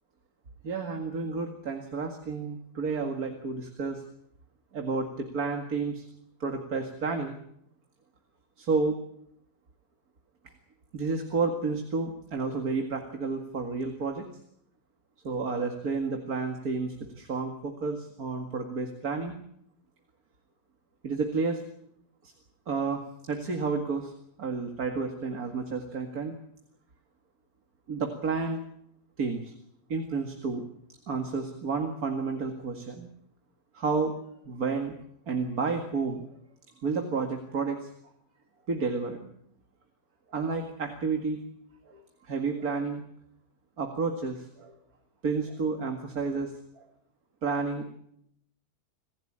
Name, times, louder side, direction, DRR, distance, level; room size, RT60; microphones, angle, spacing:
voice 1, 0.6-4.0 4.7-6.1 6.4-7.4 8.6-9.0 10.9-14.3 15.2-19.4 21.0-21.6 22.7-24.1 24.4-26.4 27.9-28.6 29.2-29.5 29.9-30.6 31.1-33.1 33.7-34.2 34.4-34.9 35.3-36.2 36.8-37.9 38.7-39.3 40.3-41.4 41.9-43.0 43.8-44.7 45.2-46.8 47.4-47.9, right 4 dB, 65° right, 4 dB, 2.5 m, -31 dB
27.0 x 15.5 x 8.8 m, 0.74 s
omnidirectional pair, 1.7 m